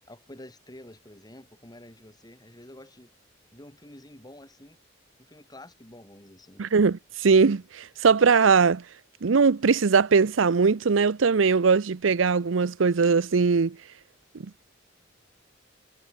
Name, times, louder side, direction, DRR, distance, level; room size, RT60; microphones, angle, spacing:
voice 1, 0.1-3.1 3.5-4.8 5.2-6.7, left 1 dB, 20° left, 5.4 m, -48 dB
voice 2, 6.6-8.8 9.2-13.8, right 5 dB, 90° right, 0.6 m, -20 dB
head